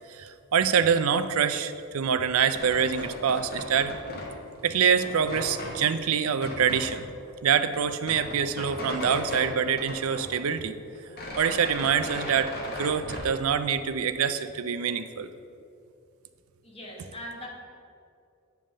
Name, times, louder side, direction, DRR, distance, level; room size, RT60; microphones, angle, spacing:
voice 1, 0.1-3.9 4.6-7.1 7.4-10.7 11.4-15.3, right 7 dB, 80° right, 11 dB, 0.4 m, -25 dB
sound 1, 2.4-4.3 4.7-5.8 6.3-6.8 7.3-7.4 7.6-9.5 9.8-10.7 10.9-13.4, left 1 dB, 45° left, 1.3 m, -37 dB
voice 2, 16.6-17.5, left 1 dB, 25° left, -3 dB, 1.4 m, -40 dB
8.7 x 3.5 x 6.4 m, 2.5 s
head